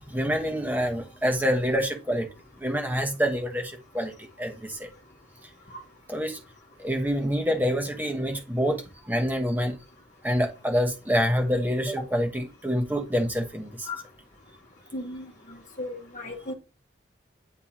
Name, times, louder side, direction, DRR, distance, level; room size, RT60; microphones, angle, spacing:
voice 1, 0.1-2.3 2.6-4.9 6.1-6.4 6.8-9.8 10.2-13.9, equal, 10° right, 1.2 m, -27 dB
voice 2, 14.9-15.3 15.8-16.5, left 2 dB, 40° left, 1.1 m, -35 dB
10.0 x 3.4 x 2.9 m
head